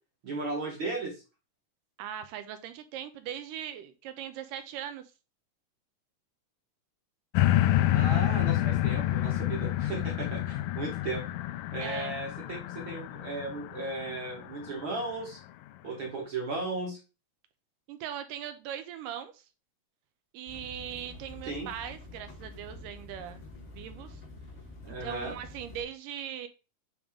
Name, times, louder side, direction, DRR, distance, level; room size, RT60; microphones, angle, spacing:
voice 1, 0.2-1.2 7.9-11.2 11.7-15.4 15.8-17.0 21.5-21.7 24.8-25.4, right 3 dB, 50° right, 1.7 m, -36 dB
voice 2, 2.0-5.0 11.8-12.2 17.9-19.4 20.3-23.5 23.8-24.2 24.9-26.5, right 10 dB, 80° right, 2.2 m, -40 dB
sound 1, 7.4-14.7 15.3-15.4, left 13 dB, 80° left, 2.0 m, -28 dB
sound 2, 20.5-25.8, left 2 dB, 45° left, 0.9 m, -47 dB
8.6 x 3.5 x 3.6 m
omnidirectional pair, 4.0 m